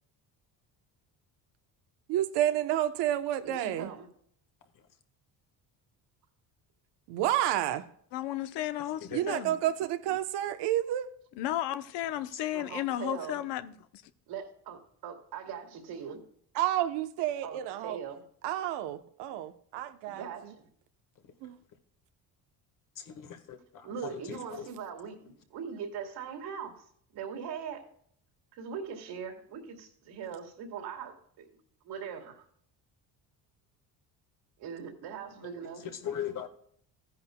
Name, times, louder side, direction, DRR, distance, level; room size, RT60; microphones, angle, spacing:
voice 1, 2.1-3.9 7.1-7.9 9.1-11.1 16.5-18.0 18.4-20.5 21.4-21.6, right 12 dB, 85° right, 1.0 m, -30 dB
voice 2, 3.4-4.1 12.5-13.4 14.3-16.2 17.4-18.2 20.1-20.7 23.8-26.8 27.1-27.8 28.5-31.5 31.8-32.4 34.6-35.8, right 7 dB, 70° right, 2.5 m, -41 dB
voice 3, 8.1-9.5 11.4-14.0, left 13 dB, 85° left, 0.8 m, -34 dB
voice 4, 22.9-24.7 35.8-36.5, left 9 dB, 50° left, 1.5 m, -39 dB
15.0 x 10.5 x 2.2 m
cardioid pair, 135°, 40 cm